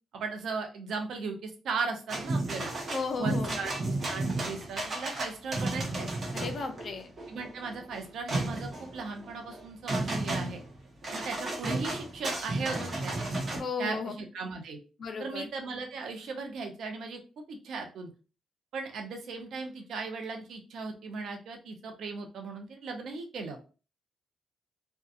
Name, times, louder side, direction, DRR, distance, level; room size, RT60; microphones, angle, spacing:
voice 1, 0.1-2.7 3.2-6.1 7.3-10.6 11.1-13.2 13.8-14.8 15.2-17.2 17.5-18.1 18.7-23.6, right 4 dB, 75° right, 4 dB, 0.6 m, -37 dB
sound 1, 2.1-13.6, right 2 dB, 50° right, 0.9 m, -33 dB
voice 2, 2.9-3.6 6.3-7.1 13.6-14.1 15.0-15.5, left 4 dB, 55° left, 6 dB, 0.5 m, -34 dB
2.7 x 2.2 x 2.4 m, 0.35 s
cardioid pair, 85°, 0 cm